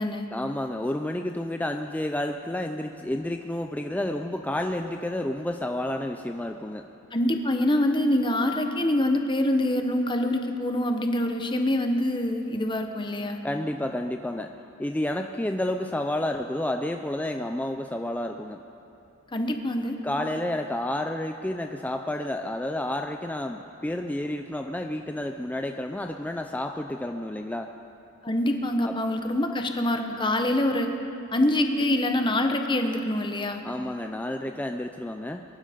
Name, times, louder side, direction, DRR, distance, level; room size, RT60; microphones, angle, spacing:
voice 1, 0.3-6.9 13.4-14.5 14.8-18.6 20.0-27.7 28.8-28.9 33.6-35.4, left 1 dB, 5° left, 5 dB, 0.4 m, -30 dB
voice 2, 7.1-13.4 19.3-19.9 28.2-30.9 31.3-33.6, left 1 dB, 20° left, 5 dB, 1.0 m, -25 dB
23.0 x 11.5 x 5.1 m, 2.8 s
head